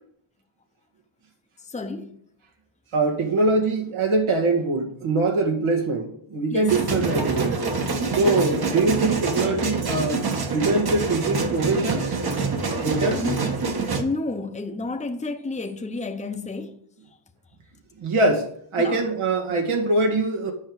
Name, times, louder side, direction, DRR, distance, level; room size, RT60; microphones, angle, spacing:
voice 1, 1.6-2.2 6.5-6.8 8.2-8.5 13.0-13.5 13.9-16.8 17.1-17.2 18.8-19.1, left 3 dB, 15° left, 0.8 m, -31 dB
voice 2, 2.9-7.6 8.1-10.2 10.5-12.1 12.8-13.2 18.0-18.5 18.7-20.5, right 3 dB, 80° right, 2.2 m, -23 dB
sound 1, 6.7-14.0, right 4 dB, 50° right, 1.4 m, -26 dB
9.8 x 5.4 x 6.5 m
wide cardioid pair, 95°, 49 cm